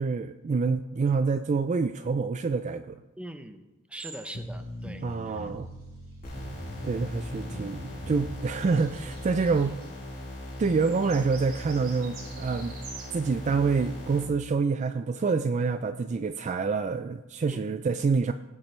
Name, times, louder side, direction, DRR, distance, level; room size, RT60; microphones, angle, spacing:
voice 1, 0.0-3.0 5.0-5.7 6.8-9.7 10.6-12.8 13.1-18.3, right 4 dB, 35° right, 10 dB, 0.3 m, -27 dB
voice 2, 3.2-3.6 3.9-5.5 17.5-17.8, right 1 dB, 5° right, 7 dB, 0.7 m, -42 dB
sound 1, 4.0-4.4 4.8-4.9 5.6-10.0 10.3-10.4 10.6-13.1, right 5 dB, 80° right, 2.5 m, -49 dB
sound 2, 4.3-9.7, equal, 85° left, 3.4 m, -41 dB
sound 3, 6.2-14.2, left 1 dB, 40° left, 4.2 m, -40 dB
16.5 x 7.3 x 3.2 m, 1.1 s
head